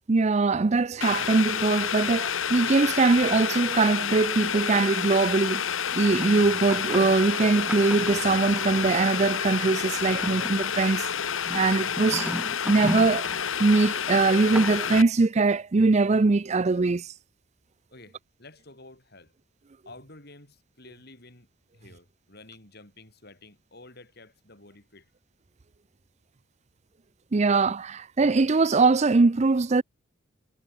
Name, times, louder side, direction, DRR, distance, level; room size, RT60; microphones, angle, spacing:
voice 1, 0.1-5.6 5.9-11.1 11.5-12.3 12.6-13.3 13.6-17.1 27.3-29.8, right 3 dB, 35° right, 0.5 m, -22 dB
Boiling, 1.0-15.0, left 8 dB, 75° left, 1.2 m, -29 dB
sound 1, 5.9-9.0 10.0-13.5 14.1-15.0, equal, 5° right, 2.1 m, -36 dB
voice 2, 17.9-19.3 19.9-25.1, left 2 dB, 50° left, 7.1 m, -51 dB
head